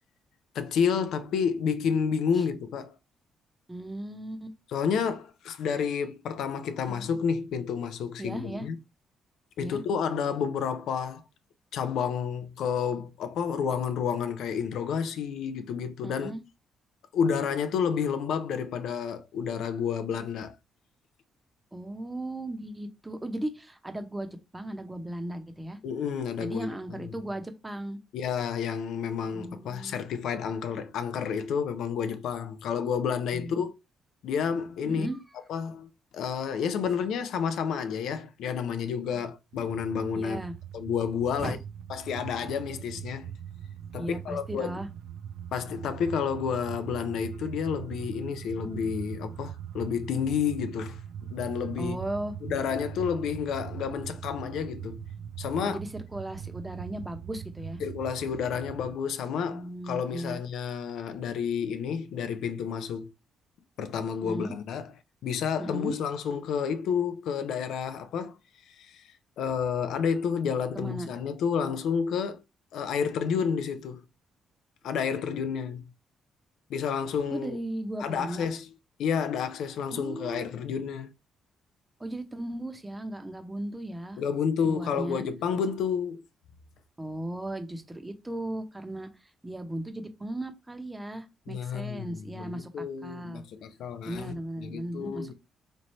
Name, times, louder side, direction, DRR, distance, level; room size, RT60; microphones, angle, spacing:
voice 1, 0.5-2.9 4.7-8.8 9.6-11.2 11.7-16.3 17.1-20.5 25.8-27.1 28.1-33.7 34.2-35.1 35.5-40.4 40.7-41.6 41.9-43.3 43.9-44.8 45.5-51.0 51.3-52.1 52.4-55.0 55.4-55.8 57.8-63.1 63.8-64.9 65.2-68.3 68.8-69.0 69.4-72.4 72.7-74.0 74.8-75.8 76.7-77.6 78.0-78.7 79.0-81.1 84.2-86.2 91.5-95.3, left 7 dB, 80° left, 0.4 m, -30 dB
voice 2, 3.7-4.6 6.9-7.2 8.2-8.7 9.6-9.8 16.0-16.4 21.7-25.8 26.4-28.0 29.3-30.0 33.3-33.7 34.9-35.2 39.0-39.3 40.1-40.5 41.4-41.5 44.0-44.9 51.8-52.3 55.6-57.8 59.5-60.4 64.2-64.5 65.6-65.9 70.7-71.1 77.3-78.5 79.9-80.5 82.0-84.2 84.6-85.2 87.0-89.1 89.4-93.4 94.1-95.3, right 1 dB, 15° right, 0.8 m, -36 dB
sound 1, 39.5-59.0, right 9 dB, 80° right, 0.3 m, -41 dB
3.1 x 2.7 x 4.2 m
cardioid pair, 90°, 0 cm